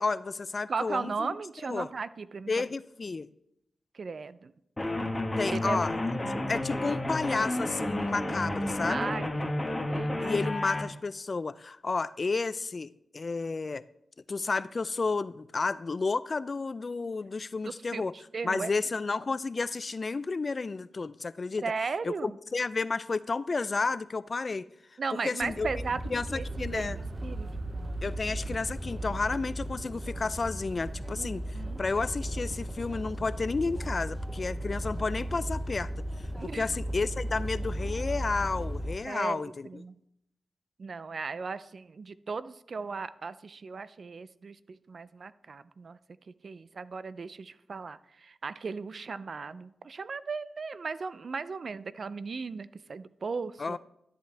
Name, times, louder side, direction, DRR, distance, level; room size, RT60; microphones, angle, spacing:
voice 1, 0.0-1.4 1.7-1.9 2.5-3.3 5.4-5.9 6.5-9.1 10.2-13.8 14.3-18.1 18.4-21.6 22.0-24.7 25.2-25.7 26.1-27.0 28.0-31.4 31.8-35.9 36.2-39.8 53.6-53.8, left 4 dB, 45° left, 0.4 m, -31 dB
voice 2, 0.7-2.6 3.9-4.5 5.5-5.8 8.9-10.4 17.7-18.7 21.6-22.4 25.0-27.5 31.2-31.8 36.4-36.7 39.0-40.0 40.8-46.0 46.3-53.8, right 4 dB, 60° right, 0.4 m, -37 dB
sound 1, 4.8-10.8, left 1 dB, 25° left, 1.5 m, -31 dB
sound 2, 25.4-39.0, equal, 10° right, 0.6 m, -36 dB
sound 3, 25.6-37.4, right 4 dB, 75° right, 0.8 m, -47 dB
12.0 x 8.2 x 3.4 m
cardioid pair, 55°, 0 cm